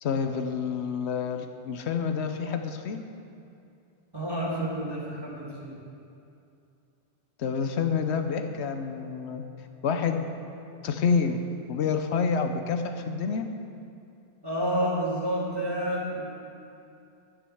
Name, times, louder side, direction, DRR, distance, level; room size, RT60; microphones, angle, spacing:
voice 1, 0.0-3.0 7.4-9.4 9.8-10.3 10.8-11.4 11.7-13.5, left 6 dB, 85° left, 6 dB, 1.0 m, -28 dB
voice 2, 4.1-5.8 14.4-16.3, equal, 20° right, -6 dB, 2.4 m, -29 dB
11.0 x 6.4 x 7.8 m, 2.6 s
omnidirectional pair, 1.1 m